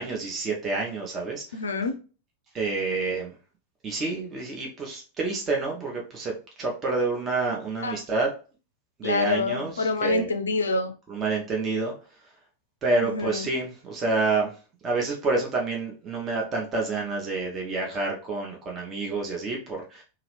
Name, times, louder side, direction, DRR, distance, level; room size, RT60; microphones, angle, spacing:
voice 1, 0.0-1.4 2.5-3.3 3.8-6.3 6.6-8.3 9.0-10.3 11.1-11.9 12.8-14.5 14.8-20.0, right 3 dB, 25° right, 0 dB, 0.7 m, -28 dB
voice 2, 1.5-1.9 7.8-8.0 9.0-10.9 13.0-13.5, left 3 dB, 70° left, 7 dB, 0.4 m, -26 dB
2.9 x 2.5 x 3.0 m, 0.35 s
figure-of-eight pair, 90°, 0 cm